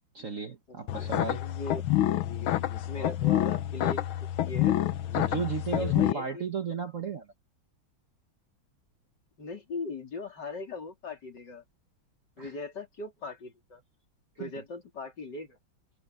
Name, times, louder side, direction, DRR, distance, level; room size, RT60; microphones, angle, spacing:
voice 1, 0.1-1.4 2.8-2.9 5.1-7.3 12.4-12.5 14.4-14.5, right 5 dB, 45° right, 1.5 m, -34 dB
voice 2, 0.7-1.8 2.8-4.8 5.7-6.5 9.4-11.6 12.4-13.8 14.4-15.6, left 3 dB, 55° left, 4.3 m, -40 dB
sound 1, 0.9-6.1, left 13 dB, 85° left, 1.7 m, -27 dB
omnidirectional pair, 2.2 m